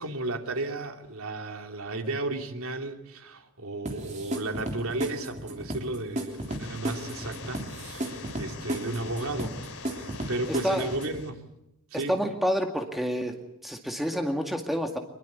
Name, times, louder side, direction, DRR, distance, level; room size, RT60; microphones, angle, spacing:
voice 1, 0.0-9.6 9.9-11.4 11.9-12.2, right 2 dB, 75° right, 5 dB, 2.9 m, -34 dB
sound 1, 3.9-11.2, right 1 dB, 30° right, 3.5 m, -35 dB
sound 2, 6.3-11.3, left 4 dB, 80° left, 3.6 m, -43 dB
voice 2, 10.5-10.9 12.1-13.4 13.6-15.0, equal, ahead, 4 dB, 2.0 m, -28 dB
25.0 x 22.0 x 8.3 m, 0.84 s
head